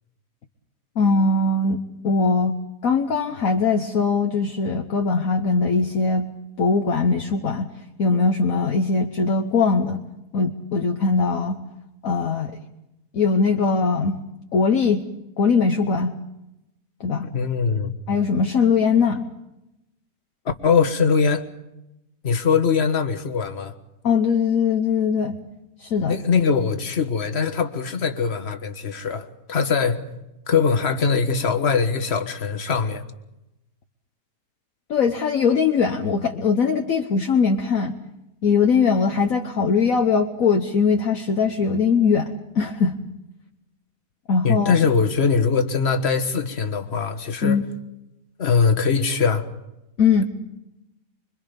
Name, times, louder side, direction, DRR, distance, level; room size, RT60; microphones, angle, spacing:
voice 1, 1.0-6.3 6.6-7.7 8.0-10.0 10.3-11.6 12.0-12.5 13.1-14.2 14.5-15.0 15.4-16.2 17.0-17.3 18.1-19.3 24.0-25.4 25.8-26.2 34.9-37.9 38.4-43.0 44.3-44.7 47.4-47.6 50.0-50.2, left 5 dB, 55° left, 4 dB, 1.4 m, -21 dB
voice 2, 17.3-17.9 20.6-21.5 22.2-23.7 26.1-30.0 30.5-33.0 44.4-47.6 48.4-49.4, left 5 dB, 40° left, 6 dB, 1.7 m, -21 dB
25.5 x 24.0 x 5.3 m, 0.92 s
omnidirectional pair, 1.8 m